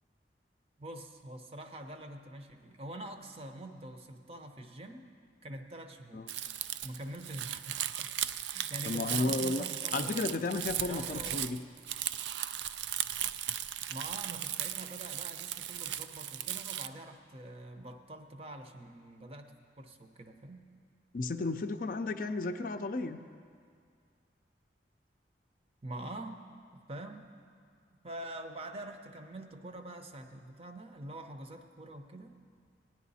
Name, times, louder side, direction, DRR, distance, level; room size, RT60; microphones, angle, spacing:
voice 1, 0.8-5.1 5.4-6.3 6.8-10.3 10.8-11.6 13.9-20.6 25.8-26.4 26.9-27.3 28.0-32.3, right 1 dB, 35° right, 6 dB, 0.7 m, -45 dB
Crumpling crinkling, 6.3-16.9, right 11 dB, 80° right, 0.4 m, -37 dB
voice 2, 8.9-9.6 9.9-11.6 21.1-23.2, left 3 dB, 50° left, 8 dB, 0.5 m, -33 dB
17.5 x 9.6 x 4.1 m, 2.2 s
head